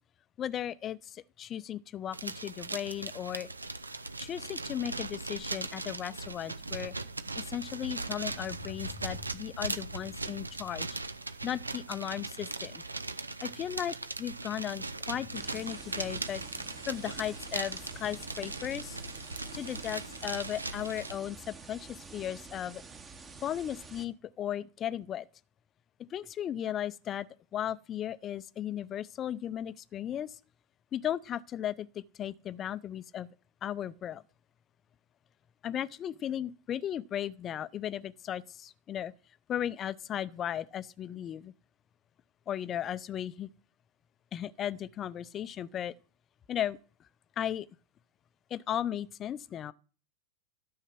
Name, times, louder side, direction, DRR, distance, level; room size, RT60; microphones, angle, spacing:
voice 1, 0.4-3.5 4.2-6.9 7.4-10.9 11.4-12.8 13.4-19.0 19.5-22.8 23.4-25.3 26.1-27.3 27.5-30.4 30.9-33.3 33.6-34.2 35.6-39.1 39.5-41.5 42.5-43.5 44.3-45.9 46.5-46.8 47.4-47.7 48.5-49.7, left 10 dB, 30° left, 0.6 m, -36 dB
sound 1, 2.1-21.1, right 3 dB, 80° right, 0.6 m, -39 dB
sound 2, 15.3-24.1, right 4 dB, 20° right, 1.3 m, -49 dB
13.0 x 6.6 x 6.0 m
figure-of-eight pair, 90°, 0 cm